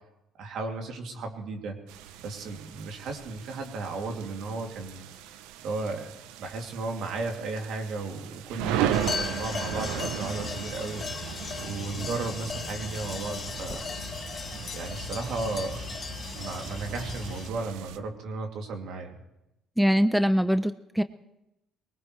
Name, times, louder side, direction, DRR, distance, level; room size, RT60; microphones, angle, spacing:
voice 1, 0.4-1.8 2.2-5.1 5.6-6.1 6.4-11.3 11.6-13.9 14.7-15.8 16.3-19.2, right 3 dB, 70° right, 2 dB, 2.8 m, -34 dB
sound 1, 1.9-18.0, right 11 dB, 90° right, 0.7 m, -37 dB
sound 2, 8.9-17.5, left 5 dB, 40° left, 0.9 m, -37 dB
voice 2, 19.8-21.0, equal, 5° right, 12 dB, 0.6 m, -23 dB
22.5 x 19.5 x 3.3 m, 0.88 s
supercardioid pair, 80°, 0 cm